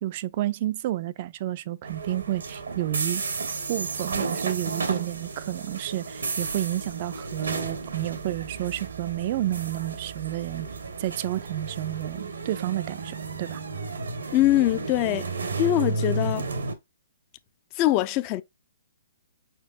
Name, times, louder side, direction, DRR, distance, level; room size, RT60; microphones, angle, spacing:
voice 1, 0.0-3.2 3.7-10.7 11.0-13.6, right 14 dB, 45° right, 0.3 m, -30 dB
sound 1, 1.8-16.8, right 4 dB, 85° right, 1.0 m, -33 dB
voice 2, 14.3-15.3 15.6-16.5 17.8-18.4, left 15 dB, 35° left, 0.4 m, -23 dB
4.7 x 4.5 x 2.4 m
hypercardioid pair, 135°, 0 cm